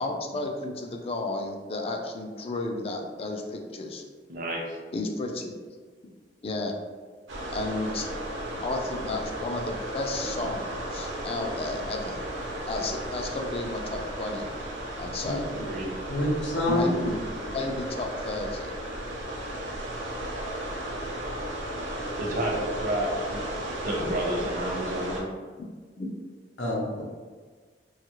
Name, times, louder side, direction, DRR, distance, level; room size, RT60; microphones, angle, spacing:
voice 1, 0.0-4.0 4.9-5.6 6.4-6.7 7.5-8.1 8.6-12.2 12.7-14.5 15.0-15.5 16.7-18.7 26.0-26.1, left 2 dB, 35° left, 2 dB, 0.4 m, -32 dB
voice 2, 4.3-4.8 15.5-15.9 22.2-23.5 23.8-25.3, right 1 dB, 50° right, -1 dB, 0.6 m, -30 dB
sound 1, 7.3-25.2, right 1 dB, 85° right, 0.7 m, -35 dB
voice 3, 16.1-16.9 26.6-27.0, left 1 dB, 90° left, -2 dB, 0.7 m, -26 dB
2.8 x 2.4 x 2.9 m, 1.5 s
head